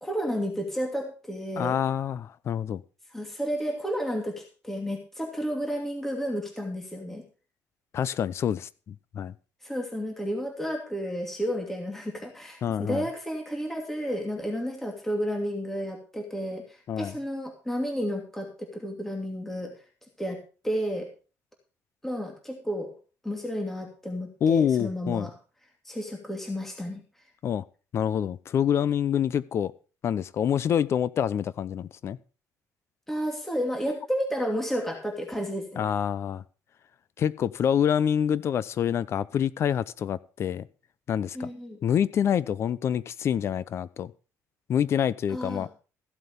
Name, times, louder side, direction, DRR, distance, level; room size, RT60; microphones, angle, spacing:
voice 1, 0.0-1.8 3.1-7.2 9.6-19.7 20.2-20.4 20.6-21.1 22.0-22.9 23.2-25.3 25.8-27.0 33.1-35.9 41.3-41.8 45.3-45.7, equal, 5° left, 2.7 m, -31 dB
voice 2, 1.6-2.8 7.9-9.3 12.6-13.0 16.9-17.1 24.4-25.3 27.4-27.6 27.9-29.7 30.0-32.2 35.8-36.4 37.2-40.6 41.1-41.5 41.8-44.1 44.7-45.7, left 9 dB, 45° left, 0.7 m, -26 dB
15.0 x 7.9 x 5.3 m
cardioid pair, 155°, 6 cm